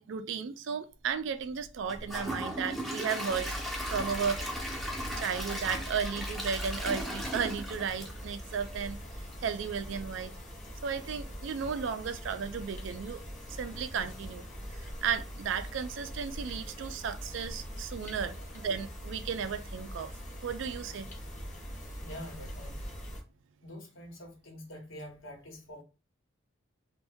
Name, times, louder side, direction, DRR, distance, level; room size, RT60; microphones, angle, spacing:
voice 1, 0.0-3.6 3.9-4.4 5.2-9.0 9.4-10.3 10.8-13.2 13.5-14.4 14.7-20.1 20.4-21.1, right 6 dB, 65° right, 0.3 m, -34 dB
Gurgling / Toilet flush / Trickle dribble, 1.8-8.9 9.3-9.4 9.9-10.0, equal, ahead, 0.5 m, -37 dB
sound 1, 3.3-23.2, equal, 35° left, 0.7 m, -42 dB
voice 2, 22.0-22.9 23.6-25.8, equal, 70° left, 0.9 m, -46 dB
2.6 x 2.2 x 3.5 m
head